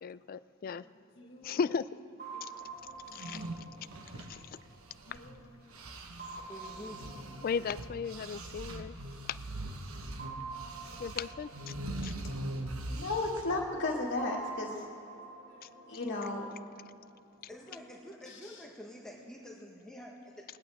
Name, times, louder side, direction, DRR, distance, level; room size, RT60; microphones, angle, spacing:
voice 1, 0.0-0.8 1.4-1.8 3.1-3.4 4.3-4.4 7.4-8.9 11.0-11.5 12.0-12.1, left 6 dB, 45° left, 16 dB, 0.3 m, -35 dB
voice 2, 1.2-1.6 2.3-2.5 5.1-5.5 6.7-6.8 7.4-7.5 10.2-11.0 12.9-14.8 15.7-16.4 18.3-18.4, left 2 dB, 60° left, -2 dB, 2.1 m, -36 dB
sound 1, 2.2-5.5 6.2-9.1 10.2-13.3 14.2-17.3, right 4 dB, 50° right, 2.3 m, -48 dB
sound 2, 3.0-5.4 5.7-13.6, right 1 dB, 85° right, 1.2 m, -42 dB
voice 3, 6.5-7.0 17.5-20.4, equal, 5° left, -3 dB, 1.3 m, -48 dB
20.0 x 19.0 x 3.6 m, 2.4 s
head